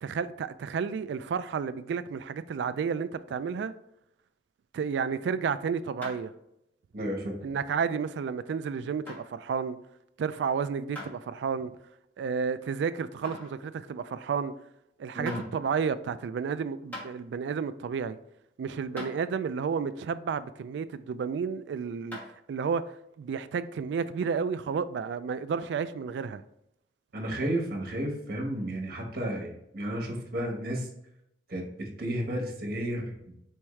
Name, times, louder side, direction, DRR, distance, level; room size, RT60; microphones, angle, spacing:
voice 1, 0.0-3.7 4.7-6.3 7.4-9.8 10.2-11.7 12.2-14.5 15.0-18.2 18.6-22.2 22.5-22.8 23.2-26.4, right 6 dB, 70° right, 0.3 m, -31 dB
sound 1, 6.0-6.4 6.9-7.0 7.8-7.9 9.1-9.2 11.0-11.1 11.7-11.8 13.2-13.6 14.7-14.8 15.3-15.5 16.5-16.6 16.9-17.1 18.4-18.5 19.0-19.1 22.1-22.4, left 1 dB, 10° left, 1.4 m, -40 dB
voice 2, 6.9-7.4 15.1-15.4 27.1-30.9 31.5-33.4, right 1 dB, 55° right, 1.2 m, -32 dB
4.5 x 3.5 x 3.1 m
head